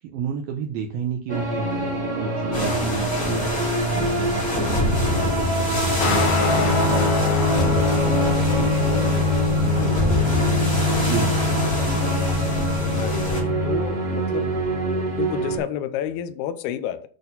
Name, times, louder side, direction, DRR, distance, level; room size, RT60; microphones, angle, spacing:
voice 1, 0.0-3.6 4.0-12.1, right 6 dB, 80° right, 2.1 m, -33 dB
sound 1, 1.3-15.6, right 1 dB, 15° right, 1.9 m, -25 dB
sound 2, 2.5-13.4, left 1 dB, 15° left, 2.2 m, -27 dB
sound 3, 6.0-13.8, left 4 dB, 65° left, 3.0 m, -24 dB
voice 2, 12.8-13.4 13.6-14.6 15.1-17.1, left 10 dB, 85° left, 2.3 m, -30 dB
8.6 x 4.3 x 5.3 m
omnidirectional pair, 5.4 m